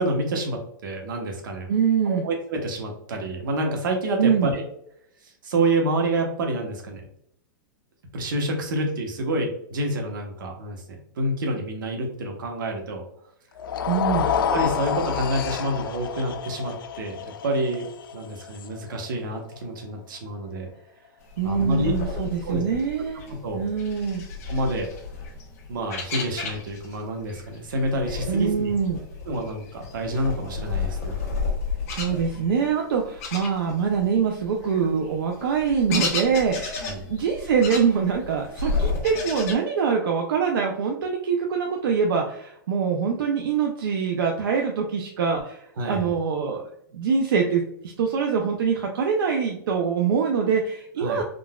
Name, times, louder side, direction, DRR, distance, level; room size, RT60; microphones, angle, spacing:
voice 1, 0.0-1.7 2.0-4.6 5.2-7.0 8.1-10.8 11.2-13.0 14.3-17.8 18.1-20.7 21.4-21.9 22.4-22.6 23.4-23.6 24.5-24.9 25.7-28.7 29.3-31.1 36.8-37.0 45.8-46.1 51.0-51.2, right 1 dB, 70° right, 2 dB, 1.0 m, -28 dB
voice 2, 1.7-2.2 4.2-4.5 13.9-14.3 21.4-23.2 23.5-24.2 28.3-29.0 31.9-46.6 46.9-51.2, right 6 dB, 90° right, 1 dB, 0.5 m, -24 dB
sound 1, 13.6-19.8, left 8 dB, 80° left, 0.4 m, -29 dB
sound 2, 21.3-27.0 27.3-34.0 34.4-39.5, left 4 dB, 45° left, 0.9 m, -32 dB
3.8 x 2.4 x 2.2 m, 0.72 s
supercardioid pair, 175°, 11 cm